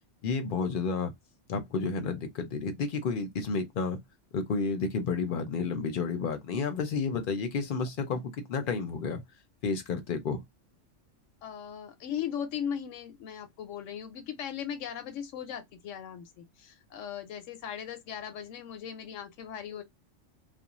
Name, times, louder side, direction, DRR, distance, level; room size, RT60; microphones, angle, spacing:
voice 1, 0.2-1.1 1.5-4.0 4.3-9.2 9.6-10.4, left 4 dB, 55° left, 0.7 m, -31 dB
voice 2, 11.4-19.8, left 8 dB, 80° left, 0.9 m, -38 dB
2.4 x 2.1 x 2.9 m
omnidirectional pair, 1.3 m